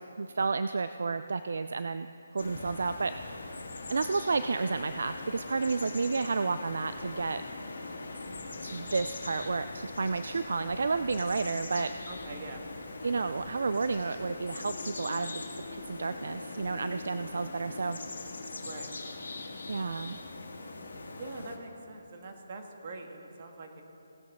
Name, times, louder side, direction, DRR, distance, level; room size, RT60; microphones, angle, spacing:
voice 1, 0.2-2.1 2.3-3.6 3.9-7.4 8.6-11.9 13.0-15.4 15.7-18.0 19.7-20.2, right 4 dB, 65° right, 11 dB, 0.3 m, -31 dB
sound 1, 2.4-21.6, left 3 dB, 70° left, 1.7 m, -41 dB
voice 2, 12.1-12.6 18.6-18.9 21.2-23.8, right 3 dB, 40° right, 3 dB, 1.5 m, -44 dB
18.0 x 8.5 x 3.7 m, 2.8 s
figure-of-eight pair, 155°, 0 cm